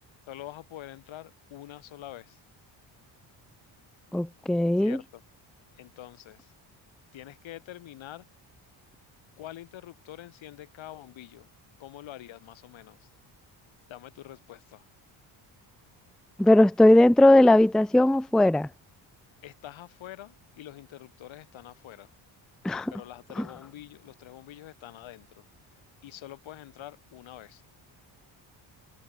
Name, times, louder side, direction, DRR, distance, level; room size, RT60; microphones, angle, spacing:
voice 1, 0.3-2.4 4.8-5.2 5.8-6.5 7.1-8.3 9.4-11.5 11.8-13.1 13.9-14.8 19.4-22.1 22.9-25.4 26.0-27.6, left 13 dB, 75° left, 5.8 m, -45 dB
voice 2, 4.1-5.0 16.4-18.7 22.6-22.9 23.4-23.5, left 1 dB, ahead, 0.5 m, -19 dB
cardioid pair, 115°, 47 cm